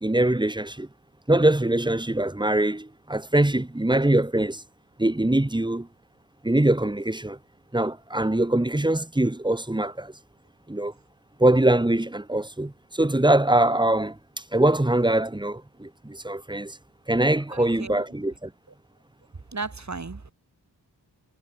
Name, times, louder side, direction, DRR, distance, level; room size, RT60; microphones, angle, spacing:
voice 1, 0.0-0.9 1.3-4.6 5.0-5.9 6.4-7.4 7.7-10.1 10.7-10.9 11.4-14.2 14.5-16.8 17.1-18.5, right 1 dB, 10° right, 1.2 m, -23 dB
voice 2, 17.5-18.0 19.5-20.3, right 4 dB, 45° right, 3.1 m, -35 dB
wide cardioid pair, 80°, 41 cm